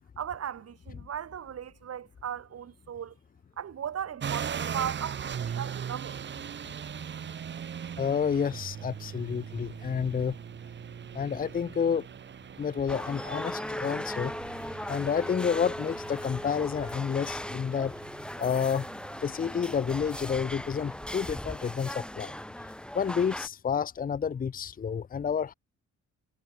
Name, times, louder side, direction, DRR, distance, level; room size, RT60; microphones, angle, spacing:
voice 1, 0.2-3.1 3.6-6.3, right 9 dB, 55° right, 5.6 m, -37 dB
sound 1, 4.2-20.7, right 8 dB, 40° right, 1.1 m, -40 dB
voice 2, 8.0-10.4 11.1-12.1 12.6-14.3 14.9-17.9 18.4-18.9 19.2-22.3 22.9-25.5, left 7 dB, 30° left, 0.8 m, -29 dB
sound 2, 12.9-23.5, left 1 dB, 5° left, 2.0 m, -38 dB
cardioid pair, 150°, 30 cm